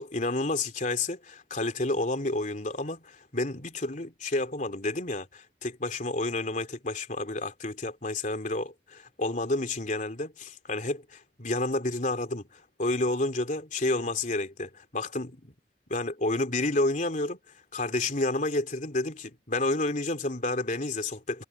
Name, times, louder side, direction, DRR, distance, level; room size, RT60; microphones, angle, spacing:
voice 1, 0.0-15.5 15.9-17.4 17.7-21.4, left 2 dB, 45° left, 3.3 m, -30 dB
head